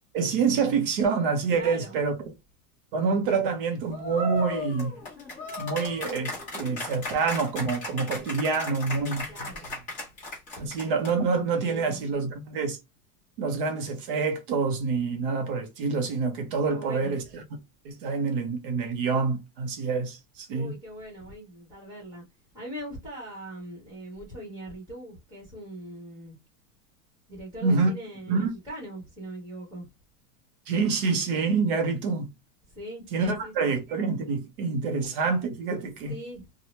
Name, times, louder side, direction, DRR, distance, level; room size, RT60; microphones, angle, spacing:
voice 1, 0.1-2.1 2.9-4.9 5.6-9.5 10.6-12.8 13.4-17.2 17.8-20.7 27.6-27.9 28.3-28.5 30.7-32.3 33.1-36.1, right 4 dB, 35° right, 0.5 m, -27 dB
voice 2, 1.5-2.0 9.3-9.7 11.5-12.0 16.7-17.2 20.5-22.2 22.5-26.4 27.3-29.9 32.7-33.7 34.8-35.0 36.1-36.5, right 1 dB, 10° right, 1.0 m, -41 dB
sound 1, 3.9-11.3, left 2 dB, 15° left, 1.0 m, -36 dB
2.8 x 2.1 x 3.0 m
supercardioid pair, 165°, 49 cm